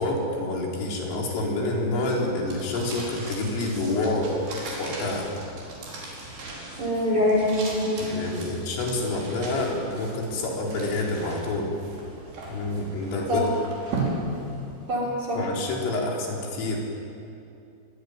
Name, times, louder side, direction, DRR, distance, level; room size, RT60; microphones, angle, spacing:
voice 1, 0.0-4.4 4.8-5.3 8.0-11.7 12.5-13.5 15.4-16.8, left 2 dB, 75° left, -1 dB, 6.7 m, -28 dB
sound 1, 2.4-15.0, right 2 dB, 60° right, 7.1 m, -37 dB
voice 2, 6.8-8.1 13.3-13.5 14.9-15.4, left 1 dB, 40° right, -3 dB, 5.4 m, -24 dB
25.0 x 22.0 x 9.9 m, 2.6 s
omnidirectional pair, 5.8 m